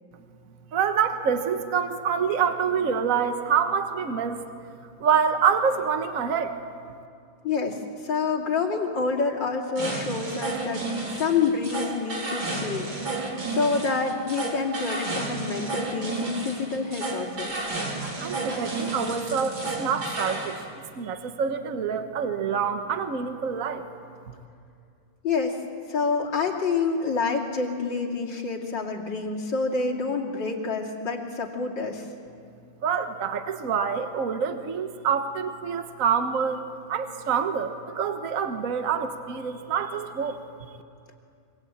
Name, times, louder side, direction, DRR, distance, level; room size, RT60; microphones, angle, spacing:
voice 1, 0.7-4.4 5.0-6.6 18.2-20.6 21.0-23.8 32.8-36.6 36.9-40.4, right 7 dB, 45° right, 7 dB, 1.6 m, -26 dB
voice 2, 7.4-10.8 11.2-17.5 25.2-25.6 25.9-32.1, left 4 dB, 65° left, 0 dB, 3.3 m, -27 dB
sound 1, 9.8-20.6, right 3 dB, 75° right, 4.7 m, -32 dB
25.5 x 24.0 x 8.9 m, 2.4 s
omnidirectional pair, 2.2 m